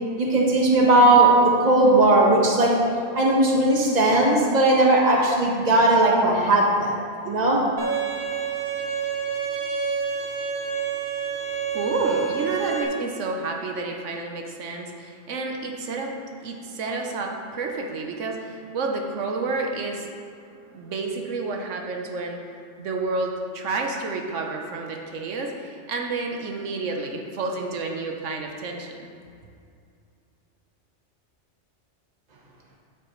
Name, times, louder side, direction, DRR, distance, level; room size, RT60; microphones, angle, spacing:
voice 1, 0.2-2.7 3.1-6.9 7.2-7.6, right 2 dB, 35° right, -2 dB, 1.3 m, -18 dB
Bowed string instrument, 7.8-12.8, right 7 dB, 60° right, 1.5 m, -28 dB
voice 2, 11.7-16.1 16.4-20.1 20.7-29.1, right 3 dB, 85° right, 2 dB, 1.2 m, -30 dB
9.2 x 8.1 x 3.1 m, 2.4 s
omnidirectional pair, 1.2 m